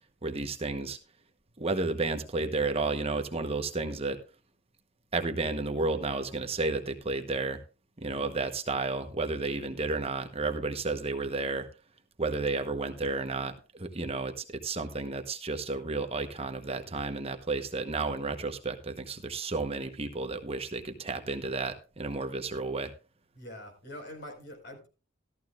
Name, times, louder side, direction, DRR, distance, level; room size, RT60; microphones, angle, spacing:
voice 1, 0.2-1.0 1.6-4.2 5.1-7.6 8.0-11.7 12.2-22.9, right 3 dB, 30° right, 1.0 m, -32 dB
voice 2, 23.3-24.9, left 1 dB, 60° left, 4.8 m, -44 dB
14.0 x 13.5 x 2.4 m
head